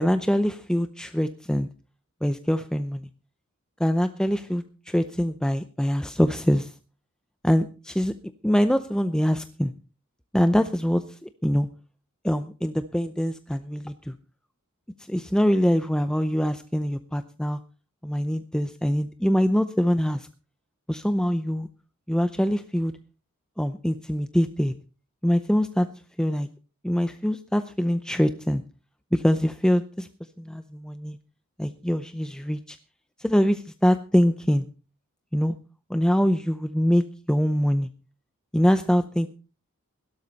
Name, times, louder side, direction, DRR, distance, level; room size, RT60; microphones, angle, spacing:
voice 1, 0.0-1.7 2.2-3.1 3.8-6.7 7.4-8.1 8.4-9.7 10.3-11.7 12.2-14.1 15.1-17.6 18.0-20.3 20.9-21.7 22.1-22.9 23.6-24.7 25.2-25.9 26.2-26.5 26.8-28.6 29.1-30.1 30.4-31.2 31.6-32.8 33.2-34.6 35.3-35.6 35.9-37.9 38.5-39.3, equal, 5° left, 10 dB, 0.6 m, -24 dB
16.5 x 13.0 x 4.1 m, 0.35 s
head